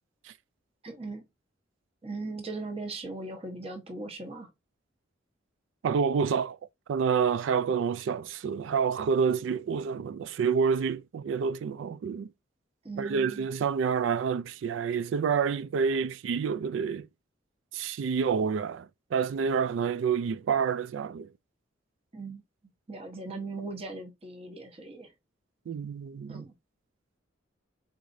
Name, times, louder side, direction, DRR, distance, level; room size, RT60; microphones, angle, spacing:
voice 1, 0.8-1.2 2.0-4.5 12.8-13.5 22.1-22.4 22.9-25.1 26.3-26.5, right 3 dB, 30° right, 1.0 m, -39 dB
voice 2, 5.8-6.6 6.9-12.3 13.0-17.1 17.7-21.3 25.7-26.4, right 6 dB, 80° right, 0.3 m, -28 dB
4.7 x 4.0 x 2.5 m
head